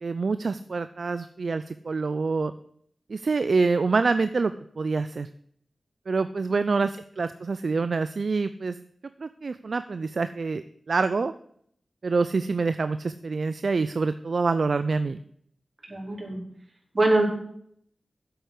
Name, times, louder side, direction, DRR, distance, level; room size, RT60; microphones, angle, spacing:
voice 1, 0.0-2.5 3.1-5.3 6.1-8.8 9.2-11.3 12.0-15.2, right 4 dB, 65° right, 12 dB, 0.5 m, -26 dB
voice 2, 15.9-16.4 16.9-17.2, right 2 dB, 45° right, 0 dB, 4.1 m, -23 dB
8.0 x 7.9 x 8.4 m, 0.66 s
cardioid pair, 50°, 0 cm